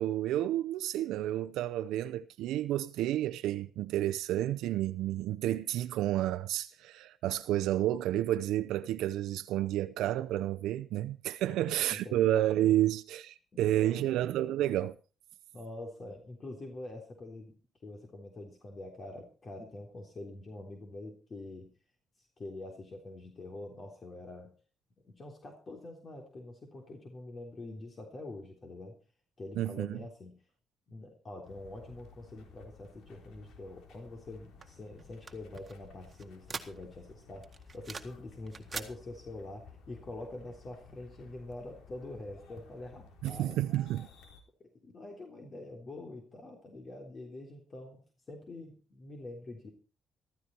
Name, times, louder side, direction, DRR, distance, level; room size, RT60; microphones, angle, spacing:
voice 1, 0.0-15.0 29.5-30.0 43.2-44.1, right 13 dB, 90° right, 0.6 m, -30 dB
voice 2, 11.5-12.2 13.5-14.2 15.5-17.5 17.8-21.7 22.4-24.5 25.0-29.0 29.4-30.4 30.9-43.6 44.6-48.0 48.3-49.7, left 2 dB, 40° left, 3.6 m, -45 dB
sound 1, 31.4-44.4, left 4 dB, 80° left, 3.8 m, -55 dB
sound 2, 34.6-37.1 37.4-38.2 38.5-38.9, right 5 dB, 35° right, 1.7 m, -43 dB
14.5 x 14.0 x 4.4 m
cardioid pair, 90°, 0 cm